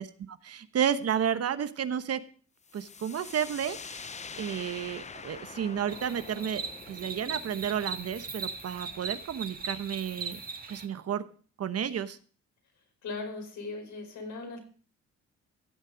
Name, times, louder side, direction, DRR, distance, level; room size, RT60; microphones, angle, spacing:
voice 1, 0.0-2.2 2.7-4.1 4.4-10.4 10.7-11.2 11.6-12.2, right 8 dB, 55° right, 11 dB, 1.1 m, -32 dB
sound 1, 2.7-10.3, left 5 dB, 25° left, 0.6 m, -46 dB
sound 2, 5.9-10.9, right 5 dB, 30° right, 1.8 m, -39 dB
voice 2, 13.0-14.6, left 3 dB, 70° left, 3 dB, 5.0 m, -38 dB
16.0 x 7.4 x 5.2 m, 0.42 s
cardioid pair, 90°, 30 cm